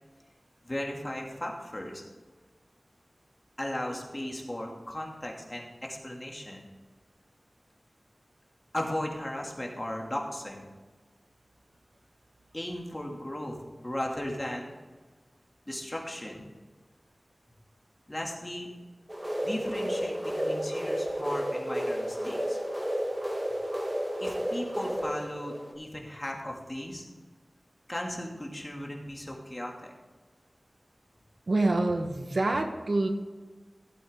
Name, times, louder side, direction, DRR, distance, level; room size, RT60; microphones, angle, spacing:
voice 1, 0.6-2.0 3.6-6.6 8.7-10.7 12.5-13.6 13.8-14.8 15.7-16.4 18.1-18.7 19.4-22.6 24.2-27.0 27.9-29.9, left 1 dB, 25° left, -1 dB, 2.7 m, -36 dB
sound 1, 19.1-25.7, equal, 25° right, 2.3 m, -32 dB
voice 2, 31.5-33.1, right 2 dB, 70° right, 5 dB, 1.3 m, -26 dB
15.5 x 8.6 x 3.8 m, 1.4 s
wide cardioid pair, 50°, 0 cm